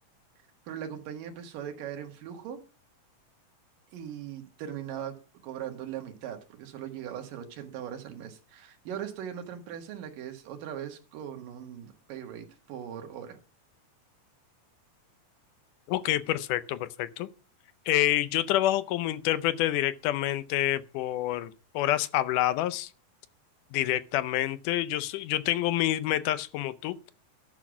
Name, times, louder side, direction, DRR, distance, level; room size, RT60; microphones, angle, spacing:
voice 1, 0.7-2.6 3.9-13.4, right 9 dB, 85° right, 3.2 m, -40 dB
voice 2, 15.9-17.3 17.9-22.9 23.7-27.1, left 14 dB, 80° left, 2.2 m, -27 dB
12.0 x 6.3 x 6.1 m
omnidirectional pair, 3.8 m